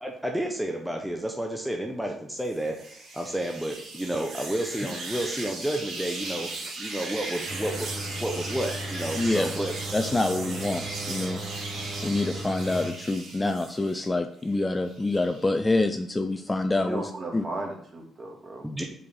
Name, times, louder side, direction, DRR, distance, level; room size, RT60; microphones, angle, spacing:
voice 1, 0.0-7.9 8.2-9.7 18.6-18.8, right 1 dB, ahead, 1 dB, 0.9 m, -31 dB
sound 1, 2.4-14.1 14.5-15.5, right 2 dB, 70° right, 2.5 m, -38 dB
sound 2, 7.5-12.9, right 1 dB, 55° right, 1.8 m, -37 dB
voice 2, 9.2-9.5 9.9-11.4 12.0-17.4, left 2 dB, 20° left, 8 dB, 0.5 m, -26 dB
voice 3, 16.7-18.9, right 2 dB, 35° right, 1 dB, 2.0 m, -36 dB
4.9 x 4.8 x 5.4 m, 0.64 s
cardioid pair, 90°, 0 cm